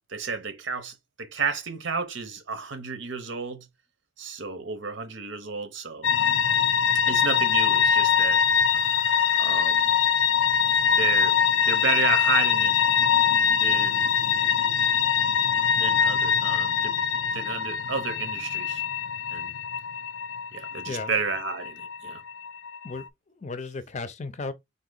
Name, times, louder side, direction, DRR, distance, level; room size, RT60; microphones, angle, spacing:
voice 1, 0.0-3.7 4.2-6.1 7.1-8.4 9.4-10.0 10.9-11.4 11.7-12.8 13.5-14.1 15.8-17.0 17.3-18.8 19.3-19.5 20.5-22.2, right 5 dB, 75° right, 0.9 m, -31 dB
sound 1, 6.0-23.0, left 7 dB, 80° left, 0.5 m, -23 dB
voice 2, 22.8-24.5, left 3 dB, 35° left, 0.5 m, -35 dB
3.8 x 2.9 x 3.9 m
head